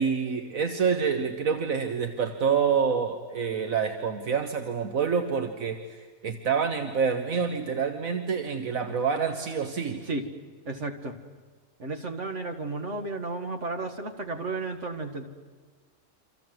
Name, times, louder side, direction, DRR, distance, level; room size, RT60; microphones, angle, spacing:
voice 1, 0.0-10.0, right 6 dB, 75° right, 7 dB, 1.7 m, -27 dB
voice 2, 10.7-11.2 11.8-15.3, right 3 dB, 55° right, 6 dB, 2.3 m, -33 dB
28.0 x 26.0 x 7.9 m, 1.5 s
omnidirectional pair, 1.4 m